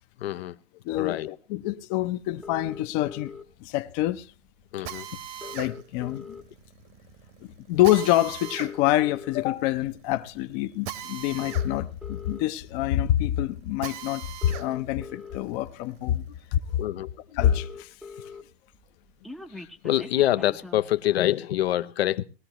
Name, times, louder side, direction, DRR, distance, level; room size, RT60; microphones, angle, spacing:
voice 1, 0.2-0.5 0.9-1.3 4.7-5.1 16.8-17.1 19.8-22.2, left 13 dB, 75° left, 0.8 m, -25 dB
voice 2, 0.8-3.3 3.6-4.3 4.8-4.9 5.4-6.4 7.7-16.2 16.5-16.6 17.3-17.9, left 13 dB, 40° left, 0.8 m, -26 dB
sound 1, 2.4-3.4 4.6-4.7 5.0-5.1 5.3-6.7 7.2-7.4 8.3-9.4 10.1-10.4 11.3-12.4 13.6-13.7 14.2-15.4 16.1-16.2 16.5-16.6 16.8-16.9 17.1-18.4 18.7-20.9, left 4 dB, ahead, 0.7 m, -42 dB
Drill, 4.9-14.7 15.1-16.7, right 10 dB, 45° right, 1.2 m, -41 dB
19.5 x 13.0 x 3.0 m
hypercardioid pair, 125°, 31 cm